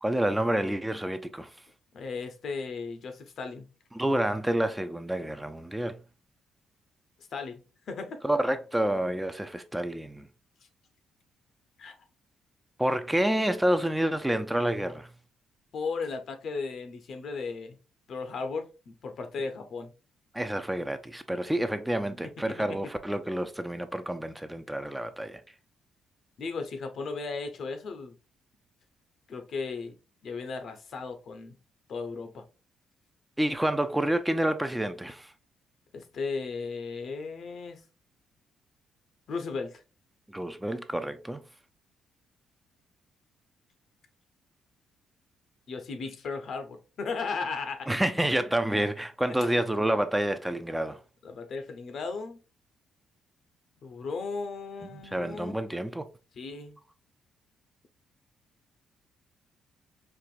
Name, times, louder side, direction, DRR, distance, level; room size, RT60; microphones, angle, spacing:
voice 1, 0.0-1.5 3.9-6.0 8.2-10.3 12.8-15.1 20.3-25.4 33.4-35.3 40.3-41.4 47.9-51.0 55.1-56.0, right 1 dB, 10° right, 0.4 m, -28 dB
voice 2, 1.9-3.7 7.3-8.2 11.8-12.0 15.7-17.8 18.1-19.9 26.4-28.1 29.3-30.0 30.2-31.6 31.9-32.4 35.9-37.8 39.3-39.8 45.7-47.9 51.2-52.4 53.8-55.6 56.4-56.8, left 4 dB, 60° left, 0.7 m, -36 dB
4.4 x 2.5 x 2.4 m
cardioid pair, 90°, 0 cm